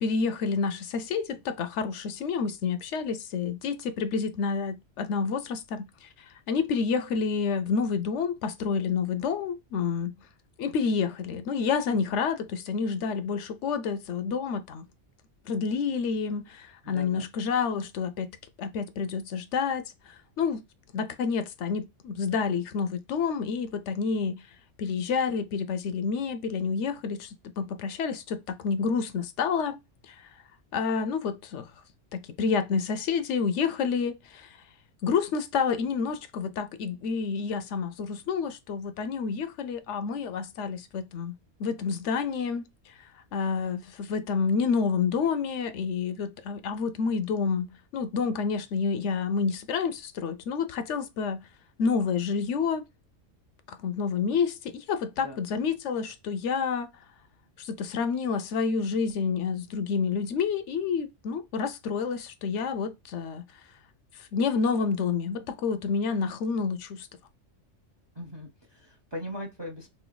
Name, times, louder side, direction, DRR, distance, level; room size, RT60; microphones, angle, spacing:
voice 1, 0.0-6.1 6.5-10.1 10.6-14.8 15.5-18.3 18.6-20.6 20.9-24.4 24.8-29.8 30.1-30.2 30.7-31.7 32.1-34.6 35.0-42.9 43.3-47.7 47.9-51.4 51.8-52.8 53.7-56.9 57.6-63.4 64.3-67.1, left 5 dB, 75° left, 0.9 m, -29 dB
voice 2, 16.8-17.2 55.2-55.4 68.2-69.9, equal, 30° right, 0.5 m, -39 dB
3.2 x 2.6 x 3.8 m
omnidirectional pair, 1.3 m